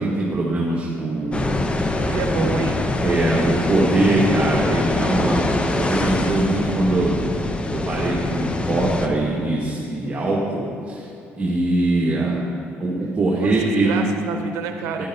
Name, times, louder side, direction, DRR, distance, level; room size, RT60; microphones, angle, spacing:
voice 1, 0.0-1.6 2.4-2.6 3.0-7.2 7.7-11.1 11.4-12.3 12.8-14.0 15.0-15.1, right 2 dB, 30° right, -4 dB, 1.5 m, -22 dB
sound 1, 1.3-9.1, left 2 dB, 20° left, 0.7 m, -24 dB
voice 2, 2.0-2.8 13.4-15.0, right 6 dB, 85° right, 5 dB, 0.7 m, -29 dB
12.0 x 10.0 x 2.8 m, 2.6 s
cardioid pair, 85°, 5 cm